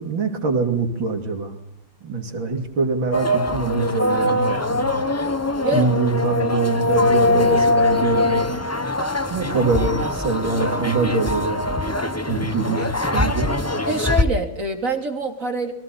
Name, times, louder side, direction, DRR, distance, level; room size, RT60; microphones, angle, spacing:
voice 1, 0.0-1.6 2.0-5.0 5.7-8.5 9.3-11.7 12.3-13.5, right 4 dB, 80° right, 4 dB, 3.7 m, -24 dB
sound 1, 3.1-14.2, left 2 dB, 15° left, 0.5 m, -22 dB
voice 2, 13.9-15.7, right 1 dB, 40° right, 4 dB, 3.2 m, -25 dB
29.0 x 22.5 x 4.2 m, 0.80 s
omnidirectional pair, 2.1 m